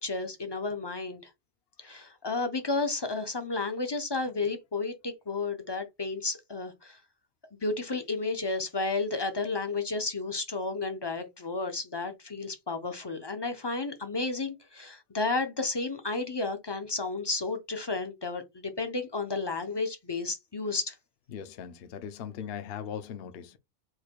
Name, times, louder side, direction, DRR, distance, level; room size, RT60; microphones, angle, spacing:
voice 1, 0.0-1.2 1.8-7.0 7.6-21.0, left 3 dB, 35° left, 0.4 m, -32 dB
voice 2, 21.3-23.6, left 8 dB, 60° left, 0.7 m, -39 dB
4.7 x 2.2 x 4.4 m
omnidirectional pair, 1.3 m